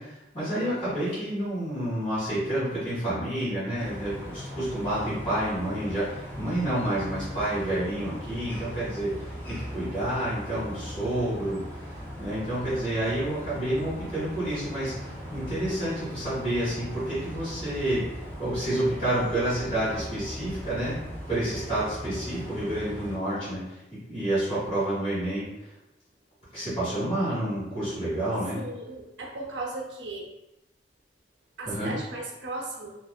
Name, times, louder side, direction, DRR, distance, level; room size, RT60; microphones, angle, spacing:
voice 1, 0.0-11.6 12.2-18.0 18.4-21.0 21.3-25.7 26.5-28.6 31.6-31.9, right 1 dB, 40° left, -12 dB, 1.3 m, -29 dB
sound 1, 3.8-23.2, equal, 10° left, 0.5 m, -39 dB
voice 2, 28.5-30.3 31.6-32.9, right 2 dB, 85° right, -1 dB, 0.6 m, -36 dB
2.3 x 2.3 x 2.2 m, 0.95 s
head